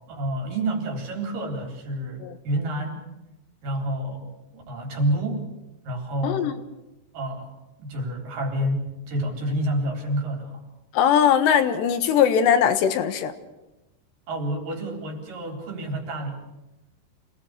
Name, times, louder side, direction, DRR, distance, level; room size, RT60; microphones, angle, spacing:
voice 1, 0.1-3.0 3.6-5.4 5.8-6.6 7.1-7.5 7.8-10.6 14.3-16.4, right 1 dB, 55° right, 2 dB, 5.4 m, -29 dB
voice 2, 6.2-6.5 10.9-13.3, left 8 dB, 85° left, 9 dB, 3.6 m, -20 dB
27.5 x 19.0 x 6.7 m, 0.99 s
omnidirectional pair, 4.9 m